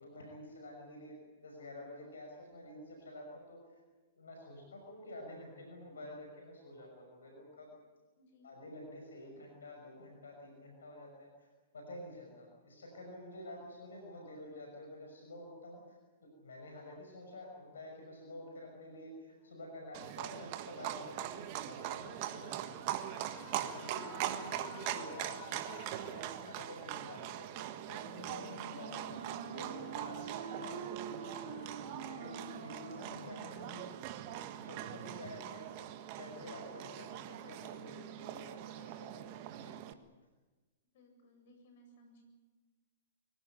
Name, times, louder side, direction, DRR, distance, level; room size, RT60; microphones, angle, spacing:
voice 1, 0.0-3.6 4.2-7.7 8.4-11.5 11.7-23.1 23.5-35.9 36.2-39.8, left 1 dB, 80° left, 1 dB, 6.1 m, -50 dB
voice 2, 8.2-8.5 40.9-42.2, equal, 60° left, 4 dB, 8.0 m, -62 dB
Livestock farm animals working animals, 19.9-39.9, right 12 dB, 45° right, 1.6 m, -42 dB
Screaming, 23.1-26.8, left 11 dB, 40° left, 1.6 m, -52 dB
Wind instrument woodwind instrument, 27.9-34.0, right 4 dB, 60° right, 4.1 m, -47 dB
24.5 x 17.5 x 9.2 m, 1.3 s
hypercardioid pair, 115°, 0 cm